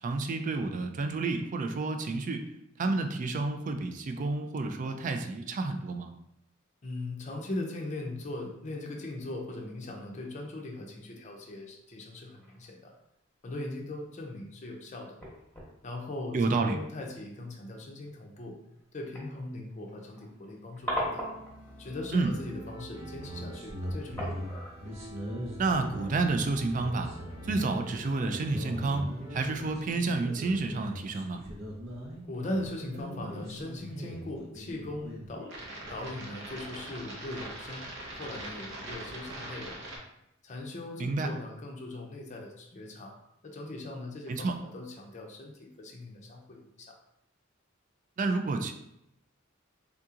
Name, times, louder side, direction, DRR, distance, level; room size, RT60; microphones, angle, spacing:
voice 1, 0.0-2.4 2.8-6.1 16.3-16.8 22.1-22.3 25.6-27.1 27.4-31.4 41.0-41.3 44.3-44.6 48.2-48.7, right 3 dB, 40° right, 6 dB, 0.3 m, -30 dB
voice 2, 6.8-12.9 13.4-15.2 15.8-18.6 18.9-21.3 21.8-24.4 32.3-35.5 35.9-39.8 40.4-43.2 43.4-47.0, left 2 dB, 35° left, 0 dB, 0.5 m, -40 dB
sound 1, 9.4-9.7 12.0-13.1 13.5-13.6 14.2-14.3 15.1-15.8 16.2-16.5 17.5-17.7 18.1-18.2 18.8-18.9 19.1-21.7 22.1-22.4 23.6-23.8 24.2-26.3 26.8-27.1 27.6-27.7, equal, 10° left, 1.0 m, -39 dB
sound 2, 21.0-29.8, equal, 85° right, 1.3 m, -48 dB
sound 3, 23.0-40.0, right 1 dB, 65° right, 0.7 m, -41 dB
3.6 x 2.8 x 2.4 m, 0.80 s
head